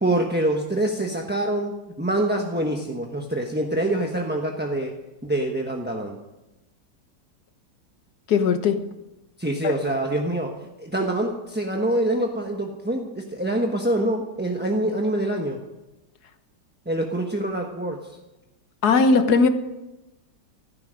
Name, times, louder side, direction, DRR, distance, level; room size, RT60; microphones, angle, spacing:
voice 1, 0.0-4.9 5.2-6.2 9.4-10.5 10.8-15.6 16.9-18.0, right 1 dB, 5° right, 1 dB, 0.9 m, -25 dB
voice 2, 8.3-8.8 9.6-9.7 18.8-19.5, left 4 dB, 60° left, 8 dB, 1.7 m, -18 dB
16.5 x 13.5 x 5.2 m, 0.98 s
omnidirectional pair, 1.9 m